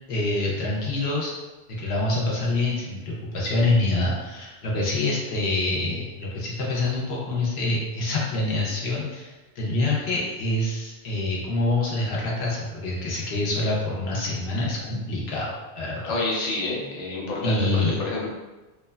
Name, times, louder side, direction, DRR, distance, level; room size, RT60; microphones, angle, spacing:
voice 1, 0.1-1.3 1.8-16.2 17.4-18.0, left 2 dB, 75° left, -4 dB, 0.9 m, -26 dB
voice 2, 16.0-18.3, left 2 dB, 45° left, -4 dB, 0.6 m, -28 dB
3.1 x 2.1 x 2.2 m, 1.1 s
omnidirectional pair, 1.1 m